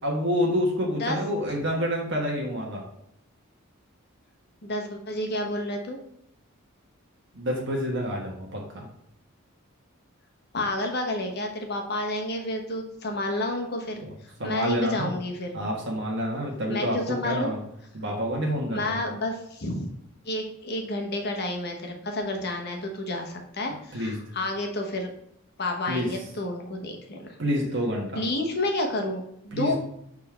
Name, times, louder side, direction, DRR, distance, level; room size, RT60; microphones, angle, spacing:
voice 1, 0.0-2.8 7.3-8.9 14.0-14.1 14.4-15.1 15.5-17.0 17.2-17.6 17.9-19.0 23.9-24.2 25.9-26.1 27.4-28.2 29.5-29.8, equal, 60° right, -1 dB, 1.3 m, -28 dB
voice 2, 4.6-6.0 10.5-15.6 16.7-17.5 18.6-19.9 20.2-25.1 25.6-27.4 28.1-29.8, left 1 dB, 50° left, 3 dB, 1.2 m, -30 dB
6.6 x 3.7 x 4.4 m, 0.76 s
head